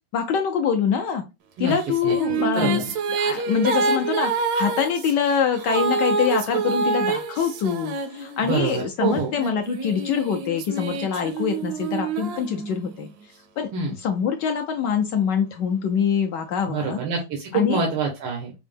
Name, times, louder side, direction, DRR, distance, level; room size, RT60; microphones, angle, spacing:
voice 1, 0.1-1.2 1.6-2.8 3.2-13.7 14.0-17.0 17.5-17.8, left 7 dB, 80° left, 5 dB, 1.0 m, -24 dB
sound 1, 1.8-8.7 9.4-13.1, right 4 dB, 70° right, 1.0 m, -27 dB
voice 2, 2.5-2.9 8.5-9.3 13.7-13.9 16.6-18.5, right 4 dB, 90° right, 0 dB, 1.8 m, -26 dB
5.3 x 2.0 x 3.3 m, 0.26 s
omnidirectional pair, 2.4 m